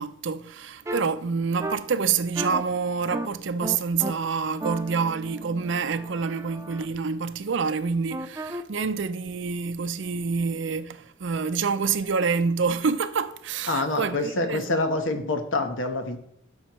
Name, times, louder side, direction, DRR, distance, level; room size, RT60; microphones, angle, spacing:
voice 1, 0.0-14.6, right 5 dB, 70° right, 0.5 m, -27 dB
sound 1, 0.9-1.0 1.6-1.8 2.4-2.6 3.1-3.3 3.6-4.1 4.6-6.9 8.1-8.6, right 1 dB, 15° right, 0.4 m, -33 dB
voice 2, 13.7-16.2, left 2 dB, 85° left, 1.2 m, -26 dB
12.0 x 6.4 x 3.1 m
head